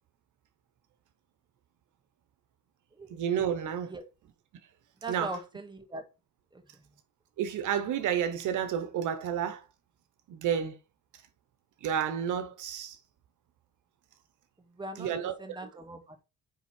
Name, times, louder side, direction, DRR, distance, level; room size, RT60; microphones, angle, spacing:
voice 1, 3.1-3.9 5.1-5.4 7.4-9.6 10.3-10.8 11.8-13.0 15.0-15.6, right 8 dB, 80° right, 1.1 m, -30 dB
voice 2, 5.0-6.0 6.5-6.6 14.8-15.1 15.4-16.2, right 2 dB, 15° right, 1.7 m, -40 dB
9.2 x 3.5 x 4.5 m
cardioid pair, 90°, 30 cm